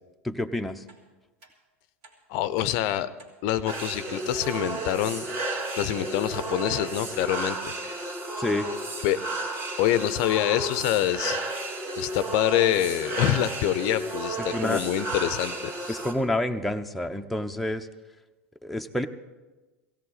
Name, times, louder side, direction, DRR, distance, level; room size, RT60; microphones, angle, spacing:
voice 1, 0.2-0.8 8.4-8.7 14.5-14.8 15.9-17.9 18.6-19.1, left 1 dB, ahead, 5 dB, 0.7 m, -28 dB
sound 1, 0.9-1.0 1.4-1.5 2.0-2.2 2.6-2.7 3.2-3.4 3.7-3.9 4.3-4.5 4.9-5.0 5.5-5.7 6.0-6.2 6.7-6.8 7.2-7.4 7.8-8.0 8.4-8.5 9.0-9.1 9.5-9.7 10.1-10.2, right 3 dB, 65° right, 2.9 m, -54 dB
voice 2, 2.3-3.1 3.4-5.2 5.7-7.6 7.8-8.0 9.0-9.2 9.8-11.4 12.0-16.0, left 12 dB, 55° left, 14 dB, 0.6 m, -26 dB
sound 2, 3.7-16.1, right 2 dB, 35° right, 2.1 m, -33 dB
17.0 x 16.5 x 4.1 m, 1.2 s
figure-of-eight pair, 85°, 8 cm